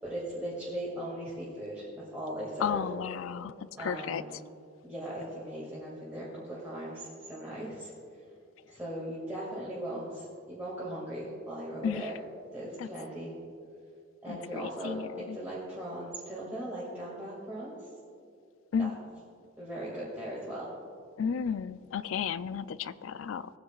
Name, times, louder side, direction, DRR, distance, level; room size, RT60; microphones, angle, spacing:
voice 1, 0.0-1.8 2.1-2.8 3.8-4.3 4.8-7.9 8.7-12.2 12.5-13.3 14.2-17.7 18.8-18.9 19.6-20.7, right 1 dB, 10° right, -8 dB, 2.3 m, -38 dB
voice 2, 2.6-4.2 11.8-12.1 12.8-12.9 14.3-15.4 18.7-18.9 21.2-23.5, left 7 dB, 75° left, 15 dB, 0.4 m, -33 dB
18.5 x 9.7 x 2.4 m, 2.4 s
head